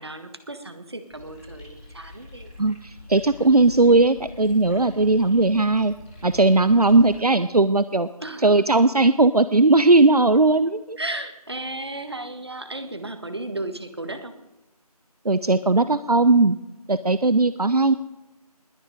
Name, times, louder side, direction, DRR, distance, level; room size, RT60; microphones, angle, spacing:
voice 1, 0.0-2.5 8.2-8.6 11.0-14.4, right 2 dB, 40° right, 8 dB, 1.6 m, -34 dB
sound 1, 1.1-7.2, left 1 dB, 10° left, 3.8 m, -45 dB
voice 2, 2.6-5.9 6.2-8.1 8.4-11.0 15.2-16.6 16.9-17.9, right 2 dB, 75° right, 14 dB, 0.8 m, -18 dB
20.5 x 9.8 x 5.1 m, 0.98 s
figure-of-eight pair, 170°, 20 cm